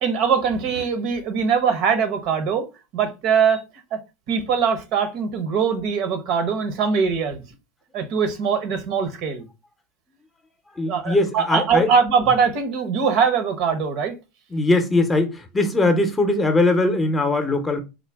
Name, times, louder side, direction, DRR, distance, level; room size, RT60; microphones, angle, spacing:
voice 1, 0.0-2.7 2.9-3.6 3.9-4.0 4.3-7.4 7.9-9.4 10.9-14.1, right 6 dB, 55° right, 0.8 m, -22 dB
voice 2, 10.8-11.9 14.5-17.8, left 2 dB, 15° left, 0.8 m, -20 dB
3.7 x 2.2 x 3.4 m
supercardioid pair, 110°, 0 cm